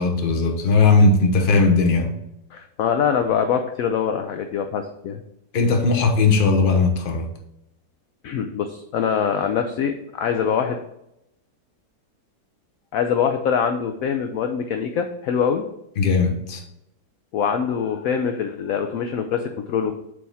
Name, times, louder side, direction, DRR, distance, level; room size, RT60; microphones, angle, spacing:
voice 1, 0.0-2.1 5.5-7.3 16.0-16.6, left 3 dB, 40° left, 0.9 m, -18 dB
voice 2, 2.5-5.2 8.2-10.8 12.9-15.7 17.3-19.9, left 7 dB, 70° left, 0.8 m, -24 dB
7.6 x 3.5 x 4.1 m
omnidirectional pair, 1.8 m